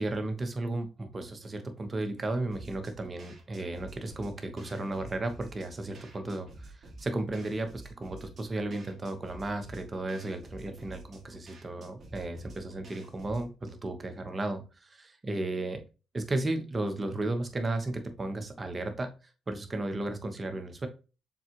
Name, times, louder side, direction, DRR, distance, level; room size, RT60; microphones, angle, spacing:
voice 1, 0.0-15.8 16.1-19.1 19.5-20.9, right 2 dB, 30° right, 6 dB, 1.0 m, -34 dB
sound 1, 2.5-13.5, right 2 dB, 45° right, 1.9 m, -50 dB
7.1 x 2.4 x 2.9 m, 0.32 s
cardioid pair, 90°, 0 cm